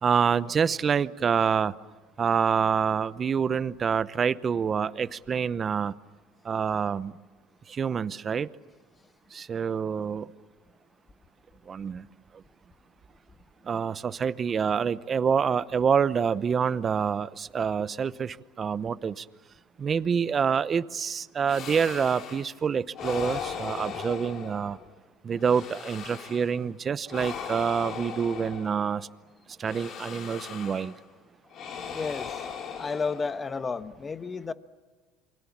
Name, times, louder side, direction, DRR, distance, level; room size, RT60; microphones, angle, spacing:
voice 1, 0.0-1.8 2.2-5.9 6.4-7.1 7.7-8.5 9.3-10.3 11.7-12.1 13.7-19.2 19.8-24.8 25.2-29.1 29.6-30.9, right 6 dB, 30° right, 16 dB, 0.8 m, -27 dB
sound 1, 21.5-22.5 22.9-24.9 25.4-26.6 27.1-29.1 29.6-31.0 31.5-33.6, left 7 dB, 50° left, 2.7 m, -38 dB
voice 2, 31.9-32.4 32.7-34.5, left 4 dB, 25° left, 12 dB, 1.2 m, -32 dB
28.5 x 23.5 x 7.3 m, 1.4 s
supercardioid pair, 115°, 0 cm